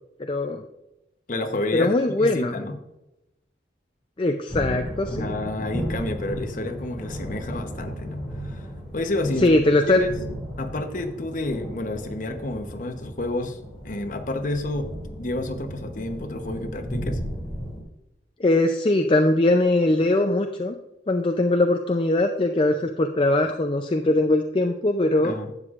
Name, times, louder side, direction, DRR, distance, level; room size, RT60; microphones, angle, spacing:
voice 1, 0.2-0.7 1.7-2.5 4.2-5.3 9.4-10.0 18.4-20.7 21.1-25.3, left 2 dB, 30° left, 4 dB, 0.5 m, -21 dB
voice 2, 1.3-2.8 5.2-8.7 8.9-10.1 10.6-13.6 13.8-17.2 25.2-25.5, left 2 dB, 45° left, 6 dB, 0.9 m, -30 dB
sound 1, 4.5-17.8, equal, 5° right, 2.6 m, -35 dB
12.0 x 8.2 x 2.5 m, 0.92 s
head